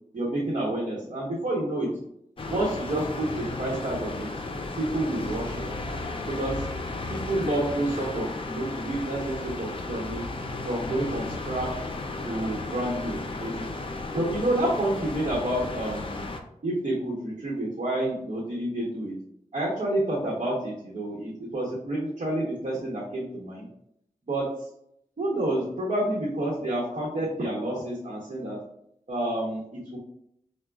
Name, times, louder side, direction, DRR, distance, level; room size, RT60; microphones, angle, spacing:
voice 1, 0.1-1.9 2.4-4.3 4.8-5.6 6.3-6.7 7.1-10.2 10.6-11.7 12.2-13.8 14.1-16.2 16.6-19.1 19.5-23.6 24.3-24.5 25.2-28.6 29.1-30.0, right 1 dB, 65° right, -6 dB, 1.0 m, -29 dB
sound 1, 2.4-16.4, left 2 dB, 40° left, 0.5 m, -34 dB
5.8 x 2.2 x 2.3 m, 0.73 s
wide cardioid pair, 65°, 13 cm